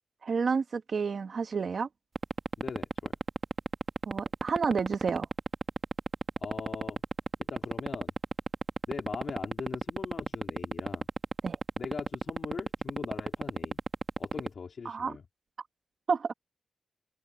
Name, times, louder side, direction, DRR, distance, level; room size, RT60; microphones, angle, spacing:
voice 1, 0.2-1.9 4.1-5.3 11.4-11.6 14.8-15.2 16.1-16.3, right 5 dB, 50° right, 1.6 m, -30 dB
sound 1, 2.1-14.5, right 3 dB, 30° right, 1.4 m, -29 dB
voice 2, 2.6-3.2 6.4-7.0 7.4-8.1 8.9-11.1 11.8-13.8 14.2-15.2, left 5 dB, 50° left, 3.2 m, -41 dB
wide cardioid pair, 175°, 0 cm